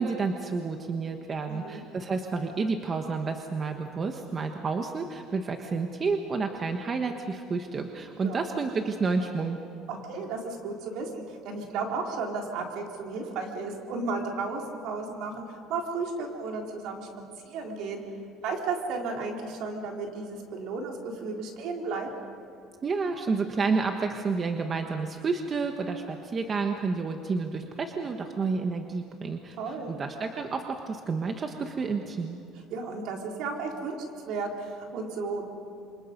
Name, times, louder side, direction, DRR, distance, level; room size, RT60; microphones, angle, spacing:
voice 1, 0.0-9.6 22.8-32.4, right 4 dB, 30° right, 4 dB, 1.3 m, -30 dB
voice 2, 1.5-1.8 8.2-8.5 9.9-17.1 17.5-18.0 18.4-22.1 29.6-30.0 32.7-34.0 34.3-35.4, right 4 dB, 65° right, 1 dB, 4.1 m, -34 dB
27.5 x 25.0 x 5.4 m, 2.7 s
cardioid pair, 130°, 0 cm